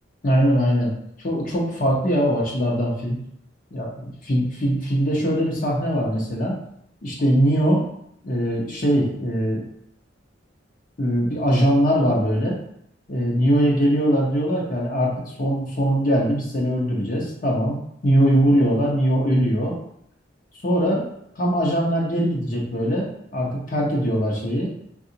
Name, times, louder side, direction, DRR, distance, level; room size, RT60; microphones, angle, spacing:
voice 1, 0.2-0.9 1.2-3.2 3.7-6.6 7.0-7.8 8.2-9.6 11.0-12.6 13.1-15.1 15.4-17.8 18.0-19.8 20.6-21.1 21.4-24.7, equal, 45° left, -3 dB, 0.7 m, -21 dB
3.7 x 2.3 x 2.7 m, 0.72 s
head